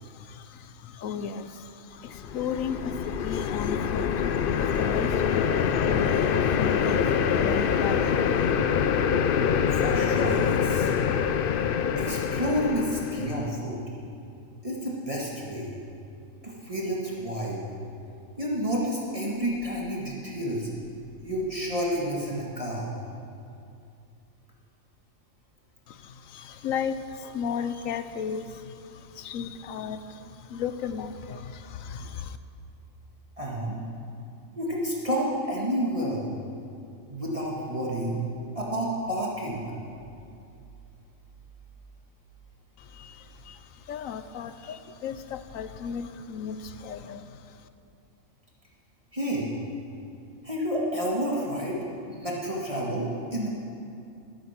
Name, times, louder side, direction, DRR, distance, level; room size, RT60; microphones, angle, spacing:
voice 1, 0.0-8.5 25.9-32.4 42.8-47.6, left 6 dB, 75° left, 11 dB, 1.1 m, -35 dB
sound 1, 2.1-13.5, left 7 dB, 60° left, 0.6 m, -25 dB
voice 2, 9.7-10.9 12.0-13.8 14.6-15.7 16.4-17.6 18.4-20.7 21.2-22.9 33.4-33.8 34.6-36.3 37.1-38.2 38.6-39.6 49.1-49.5 50.4-51.8 52.1-53.5, equal, 25° right, -4 dB, 1.9 m, -30 dB
21.0 x 8.7 x 5.9 m, 2.5 s
omnidirectional pair, 1.4 m